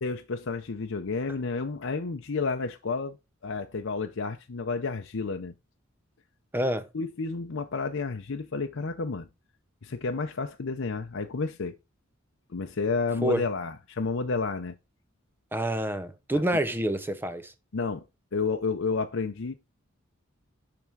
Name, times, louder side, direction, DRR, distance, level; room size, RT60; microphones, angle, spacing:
voice 1, 0.0-3.2 3.4-5.5 6.9-9.3 9.8-11.8 12.5-14.7 17.7-18.0 18.3-19.6, left 4 dB, 65° left, 0.7 m, -31 dB
voice 2, 6.5-6.9 13.2-13.4 15.5-17.5, right 1 dB, 10° right, 0.8 m, -27 dB
11.0 x 3.6 x 4.6 m
head